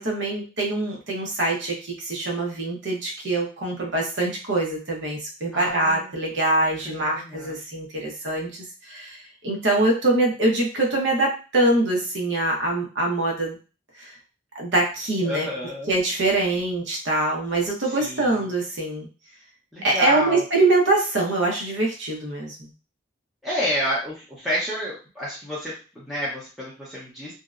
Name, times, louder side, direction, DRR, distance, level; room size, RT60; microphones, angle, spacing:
voice 1, 0.0-13.6 14.0-14.2 14.5-15.5 15.9-19.1 19.8-22.7, right 2 dB, 70° right, -1 dB, 0.8 m, -24 dB
voice 2, 5.5-6.1 6.6-7.5 15.2-15.9 17.8-18.5 19.7-20.4 23.4-27.3, equal, ahead, -9 dB, 0.6 m, -30 dB
2.8 x 2.0 x 2.3 m, 0.34 s
head